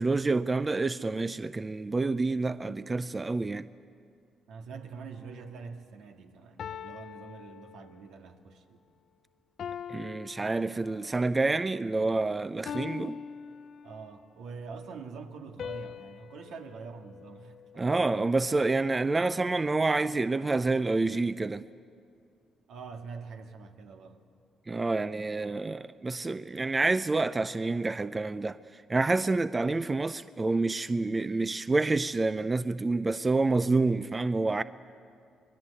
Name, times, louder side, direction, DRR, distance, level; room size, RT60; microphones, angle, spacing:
voice 1, 0.0-3.7 9.9-13.2 17.8-21.6 24.7-34.6, right 3 dB, 25° right, 0.5 m, -28 dB
voice 2, 4.5-8.8 13.8-18.5 22.7-24.2, right 5 dB, 80° right, 1.9 m, -45 dB
sound 1, 5.1-5.5 6.6-8.2 9.6-11.2 12.7-14.3 15.6-18.0, left 7 dB, 60° left, 0.6 m, -43 dB
25.0 x 21.0 x 8.4 m
cardioid pair, 90°, 0 cm